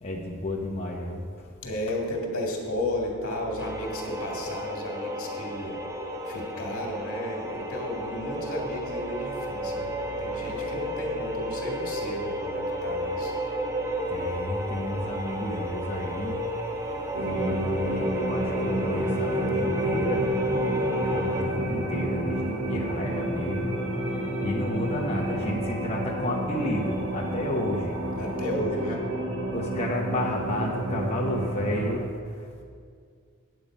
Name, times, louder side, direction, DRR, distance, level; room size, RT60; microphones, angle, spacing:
voice 1, 0.0-1.5 9.2-9.3 9.6-10.8 13.2-13.3 13.7-16.4 16.7-20.3 21.0-24.1 24.4-32.6, left 1 dB, 30° left, -2 dB, 0.8 m, -32 dB
voice 2, 1.6-5.8 6.3-9.9 10.2-13.3 28.2-29.0, left 1 dB, 75° left, 0 dB, 2.0 m, -33 dB
sound 1, 3.6-21.4, equal, 15° right, 0.9 m, -33 dB
sound 2, 17.1-32.0, right 1 dB, 60° right, 1.5 m, -30 dB
9.1 x 8.5 x 5.2 m, 2.1 s
head